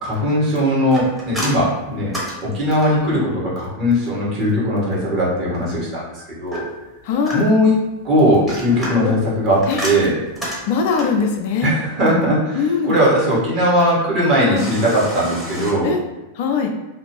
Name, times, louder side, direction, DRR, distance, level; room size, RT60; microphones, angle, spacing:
voice 1, 0.0-2.1 2.4-6.6 7.3-7.7 8.0-10.2 11.6-15.9, equal, 35° right, -6 dB, 1.3 m, -19 dB
sound 1, 0.9-3.2 6.5-7.7 8.3-11.2 14.6-15.7, equal, 5° right, 1.0 m, -30 dB
voice 2, 7.0-7.5 9.0-9.1 9.7-9.8 10.7-11.7 12.5-13.0 14.5-14.7 15.8-16.0 16.3-16.7, left 5 dB, 50° left, 4 dB, 0.4 m, -21 dB
2.7 x 2.4 x 3.0 m, 1.0 s
figure-of-eight pair, 90°, 0 cm